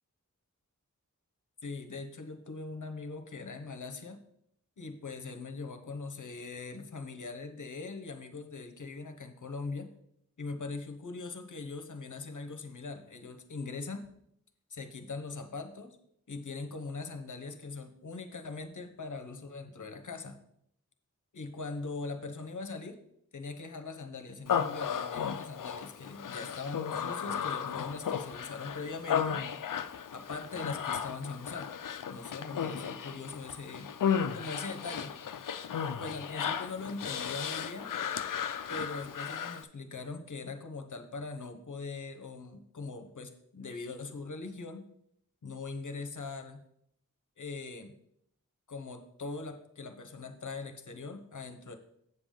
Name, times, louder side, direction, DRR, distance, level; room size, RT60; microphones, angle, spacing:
voice 1, 1.6-4.2 4.8-9.9 10.4-14.0 14.7-16.0 16.3-20.4 21.3-23.0 23.3-29.4 30.1-31.7 32.1-33.9 34.3-35.1 36.0-37.9 38.7-44.8 45.4-46.6 47.4-47.9 48.7-51.7, left 3 dB, 70° left, 7 dB, 0.9 m, -41 dB
Human voice, 24.5-39.6, left 8 dB, 85° left, 0.5 m, -35 dB
8.0 x 6.9 x 3.8 m, 0.73 s
wide cardioid pair, 75°, 32 cm